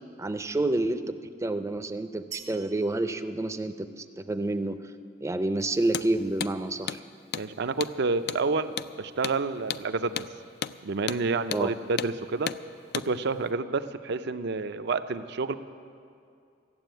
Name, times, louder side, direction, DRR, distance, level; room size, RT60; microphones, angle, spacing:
voice 1, 0.2-4.9 5.2-7.0 11.5-11.7, right 2 dB, 15° right, 9 dB, 0.5 m, -29 dB
sound 1, 2.3-4.3, right 9 dB, 85° right, 1.6 m, -46 dB
Hammer, 5.9-6.1 6.4-6.5 6.9-7.0 7.3-7.5 7.8-8.0 8.3-8.4 8.8-8.9 9.2-9.4 9.7-9.9 10.2-10.3 10.6-10.8 11.1-11.2 11.5-11.7 12.0-12.1 12.5-12.6 12.9-13.1, left 9 dB, 60° left, 0.3 m, -33 dB
voice 2, 7.3-10.3 10.8-12.5 12.9-15.5, right 4 dB, 65° right, 11 dB, 0.5 m, -29 dB
14.0 x 7.6 x 9.0 m, 2.4 s
head